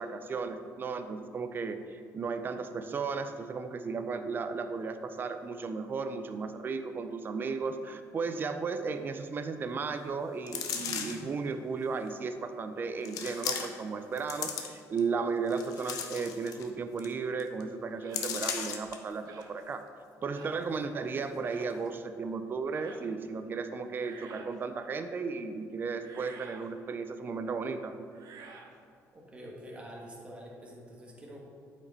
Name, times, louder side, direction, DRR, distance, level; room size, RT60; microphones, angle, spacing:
voice 1, 0.0-19.8 20.2-27.9, right 4 dB, 35° right, 8 dB, 0.5 m, -35 dB
sound 1, 10.5-11.3 12.1-12.2 13.0-13.9 14.2-15.0 15.5-16.7 17.0-17.1 17.4-17.6 18.1-19.0 19.4-19.5, left 7 dB, 80° left, 0.8 m, -36 dB
sound 2, 18.0-18.3 19.3-19.6 20.3-20.6 21.4-21.7 22.7-23.1 23.8-24.6 25.9-26.7 28.1-28.8, right 5 dB, 70° right, 0.8 m, -51 dB
voice 2, 29.1-31.5, equal, 20° right, -3 dB, 1.4 m, -46 dB
8.6 x 5.2 x 4.0 m, 2.3 s
cardioid pair, 120°, 6 cm